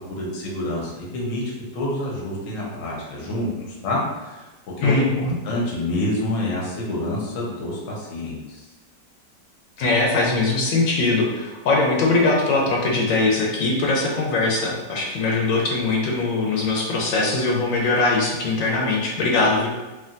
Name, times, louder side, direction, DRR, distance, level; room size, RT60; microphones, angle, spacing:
voice 1, 0.1-1.4 1.7-3.5 3.8-4.5 4.8-8.6, left 1 dB, 55° left, -4 dB, 0.9 m, -27 dB
voice 2, 4.8-5.4 9.8-19.7, left 3 dB, 85° left, -1 dB, 1.3 m, -21 dB
3.3 x 2.5 x 2.5 m, 1.2 s
omnidirectional pair, 2.0 m